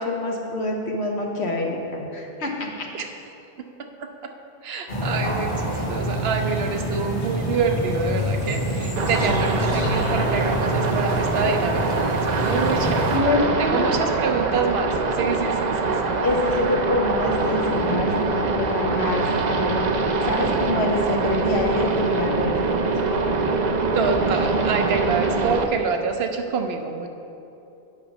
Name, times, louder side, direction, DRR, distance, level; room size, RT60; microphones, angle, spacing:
voice 1, 0.1-2.9 13.1-13.9 16.2-19.9 20.2-22.8, left 2 dB, 90° left, 0 dB, 1.3 m, -26 dB
voice 2, 3.6-4.3 4.6-13.2 13.6-16.1 23.9-27.1, right 5 dB, 70° right, 5 dB, 0.9 m, -27 dB
sound 1, 4.9-13.2, equal, 55° left, 1.9 m, -26 dB
sound 2, 9.0-25.6, right 3 dB, 50° right, 0.6 m, -24 dB
8.8 x 6.0 x 5.2 m, 2.8 s
omnidirectional pair, 1.1 m